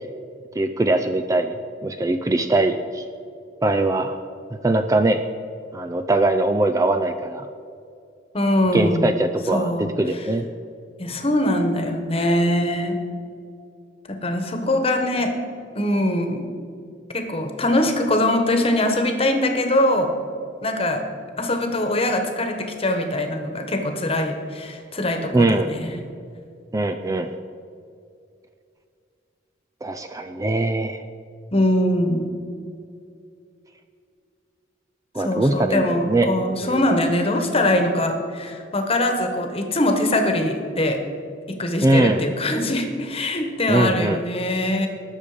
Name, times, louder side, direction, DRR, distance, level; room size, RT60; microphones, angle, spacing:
voice 1, 0.5-1.6 1.8-3.0 3.6-4.2 4.5-5.2 5.7-7.5 8.7-10.5 25.3-25.7 26.7-27.3 29.8-31.0 35.1-36.9 41.8-42.2 43.7-44.2, right 2 dB, 15° right, 7 dB, 0.4 m, -21 dB
voice 2, 8.3-9.2 9.5-10.3 11.0-13.0 14.1-15.4 15.7-16.5 17.1-20.1 20.6-21.1 21.4-26.0 31.5-32.4 35.2-41.0 41.5-44.9, left 1 dB, 30° left, 5 dB, 1.3 m, -22 dB
19.0 x 6.8 x 5.0 m, 2.4 s
head